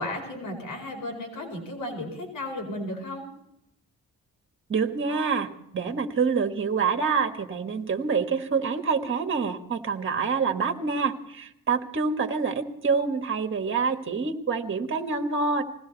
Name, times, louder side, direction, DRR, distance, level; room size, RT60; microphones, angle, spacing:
voice 1, 0.0-3.2, left 1 dB, 75° left, 0 dB, 4.8 m, -34 dB
voice 2, 4.7-15.6, right 5 dB, 35° right, 6 dB, 1.7 m, -26 dB
21.0 x 16.5 x 4.1 m, 0.79 s
cardioid pair, 125°, 33 cm